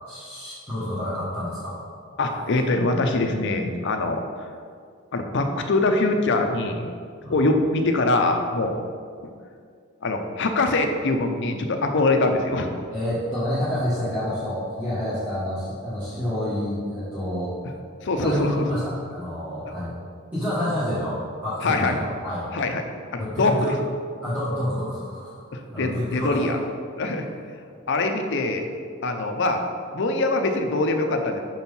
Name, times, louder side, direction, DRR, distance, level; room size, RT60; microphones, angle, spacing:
voice 1, 0.1-1.7 3.8-3.9 7.2-7.5 12.9-17.5 18.2-19.9 20.3-22.5 23.2-23.7 24.2-25.4 25.7-26.5, left 1 dB, 10° right, -12 dB, 1.4 m, -28 dB
voice 2, 2.2-4.2 5.1-6.9 7.3-8.8 10.0-12.7 17.6-17.7 18.0-18.6 21.6-22.0 22.5-22.8 23.1-23.5 25.5-26.6 27.0-27.3 27.9-28.7 29.0-29.6 29.9-31.4, left 2 dB, 60° left, 5 dB, 0.6 m, -23 dB
6.2 x 4.5 x 5.4 m, 2.2 s
head